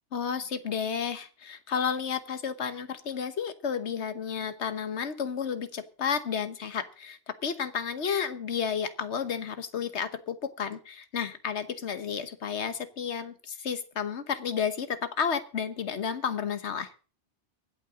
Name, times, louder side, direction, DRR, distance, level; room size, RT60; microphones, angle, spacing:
voice 1, 0.1-16.9, left 7 dB, 80° left, 11 dB, 1.4 m, -32 dB
23.5 x 8.5 x 3.8 m, 0.37 s
omnidirectional pair, 1.1 m